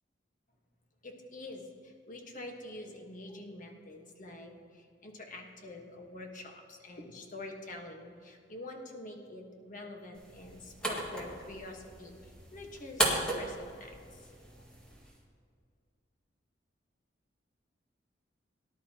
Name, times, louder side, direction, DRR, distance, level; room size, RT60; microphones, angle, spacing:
voice 1, 1.0-14.6, left 2 dB, 45° left, 2 dB, 1.4 m, -46 dB
sound 1, 10.1-15.2, right 1 dB, 5° left, 1.8 m, -36 dB
18.5 x 11.0 x 2.9 m, 2.2 s
head